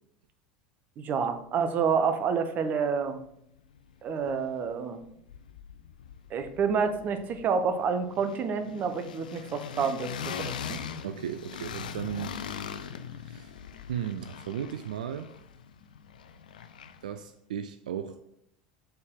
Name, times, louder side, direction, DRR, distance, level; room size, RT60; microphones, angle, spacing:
voice 1, 1.0-3.2 4.0-5.0 6.3-10.8, right 6 dB, 40° right, 0.8 m, -28 dB
sound 1, 3.2-3.3 3.6-4.7 5.0-17.2, left 7 dB, 85° left, 0.4 m, -41 dB
voice 2, 11.0-12.4 13.2-13.5 13.9-15.3 17.0-18.2, right 9 dB, 80° right, 0.3 m, -35 dB
6.7 x 4.2 x 3.7 m
hypercardioid pair, 85°, 4 cm